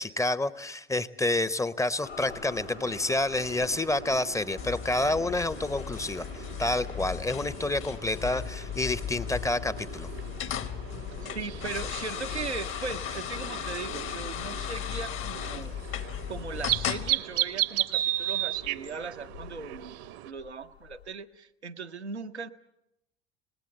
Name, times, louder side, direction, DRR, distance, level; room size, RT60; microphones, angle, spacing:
voice 1, 0.0-10.1, left 2 dB, 10° left, 17 dB, 0.8 m, -29 dB
sound 1, 2.0-21.1, left 9 dB, 80° left, 2.5 m, -50 dB
sound 2, 2.2-20.3, right 15 dB, 50° right, 0.9 m, -36 dB
sound 3, 4.6-17.1, left 10 dB, 40° left, 1.2 m, -36 dB
voice 2, 11.2-15.7 16.3-20.0 20.2-22.5, right 5 dB, 85° right, 6 dB, 0.9 m, -38 dB
26.0 x 19.5 x 7.8 m, 0.85 s
figure-of-eight pair, 65°, 33 cm